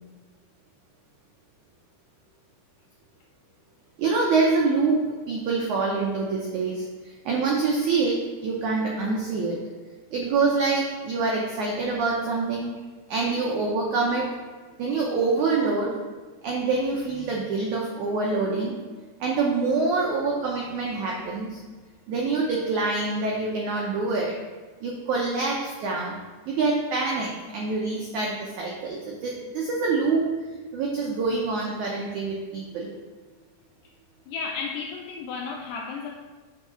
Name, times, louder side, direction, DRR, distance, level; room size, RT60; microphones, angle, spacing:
voice 1, 4.0-9.6 10.1-12.7 13.1-14.3 14.8-16.0 16.4-18.9 19.2-21.6 22.1-24.4 24.8-26.2 26.5-30.3 30.7-33.1, right 3 dB, 90° right, -1 dB, 1.6 m, -26 dB
voice 2, 34.3-36.1, left 5 dB, 85° left, 2 dB, 1.9 m, -33 dB
7.5 x 3.8 x 5.5 m, 1.4 s
omnidirectional pair, 4.5 m